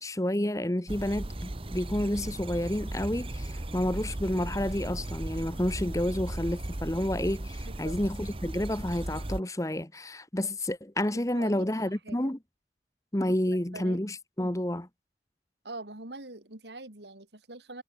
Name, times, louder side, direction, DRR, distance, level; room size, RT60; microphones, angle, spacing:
voice 1, 0.0-12.4 13.1-14.9, left 1 dB, 20° left, 1.2 m, -30 dB
sound 1, 0.9-9.4, right 1 dB, 30° right, 1.0 m, -36 dB
voice 2, 7.6-8.0 11.3-12.3 13.7-14.0 14.4-14.6 15.6-17.8, right 2 dB, 75° right, 3.6 m, -44 dB
head